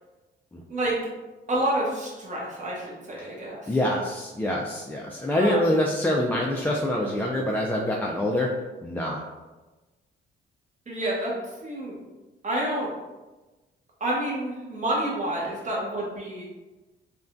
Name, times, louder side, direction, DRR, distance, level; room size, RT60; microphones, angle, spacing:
voice 1, 1.5-3.8 5.4-5.7 6.2-6.4 10.9-12.0 12.4-12.9 14.0-16.4, right 1 dB, 40° right, -4 dB, 1.1 m, -29 dB
voice 2, 3.7-8.5 8.8-9.2, left 1 dB, 10° left, -3 dB, 0.3 m, -25 dB
3.5 x 2.2 x 2.5 m, 1.2 s
cardioid pair, 90°, 20 cm